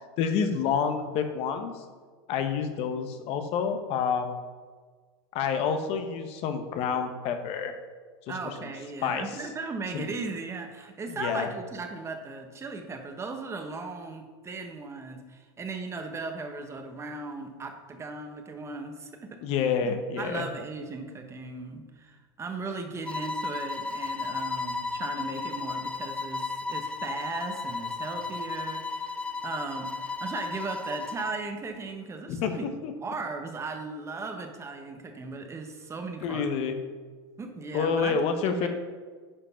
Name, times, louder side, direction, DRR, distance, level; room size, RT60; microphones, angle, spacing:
voice 1, 0.2-1.8 2.3-4.3 5.3-7.8 9.0-9.2 9.9-10.1 11.2-11.5 19.4-20.5 32.3-32.5 32.8-32.9 36.2-36.8 37.7-38.7, left 6 dB, 50° left, 7 dB, 1.1 m, -28 dB
voice 2, 8.3-19.4 19.8-32.7 33.0-36.5 37.4-38.7, right 3 dB, 20° right, 5 dB, 1.2 m, -37 dB
sound 1, 23.0-31.4, left 4 dB, 10° left, 0.5 m, -34 dB
9.9 x 5.1 x 5.7 m, 1.5 s
hypercardioid pair, 115°, 13 cm